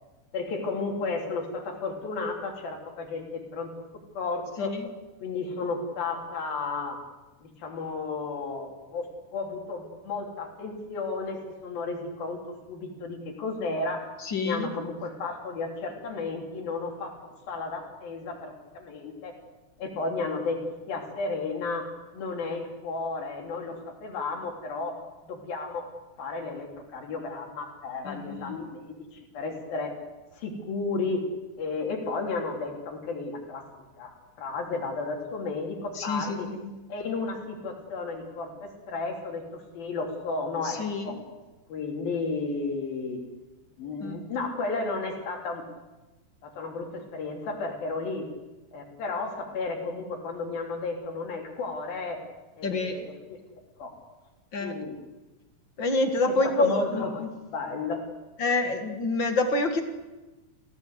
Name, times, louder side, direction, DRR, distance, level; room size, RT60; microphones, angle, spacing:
voice 1, 0.3-3.7 4.1-4.8 5.2-7.0 7.4-9.1 9.3-12.4 12.7-14.1 14.4-17.2 17.5-19.3 19.8-20.6 20.9-25.0 25.2-25.8 26.2-29.9 30.3-31.2 31.6-33.7 34.0-36.5 36.9-41.2 41.7-43.2 43.8-45.7 46.4-48.3 48.7-52.2 52.6-53.4 53.8-53.9 54.6-55.0 56.3-57.2 57.5-58.0, left 3 dB, 70° left, 1 dB, 4.9 m, -33 dB
voice 2, 14.2-14.7 28.0-28.6 36.0-36.8 40.6-41.2 44.0-44.2 52.6-53.1 54.5-54.7 55.8-57.3 58.4-59.8, left 2 dB, 40° left, 6 dB, 2.1 m, -27 dB
29.5 x 16.5 x 8.1 m, 1.1 s
omnidirectional pair, 4.4 m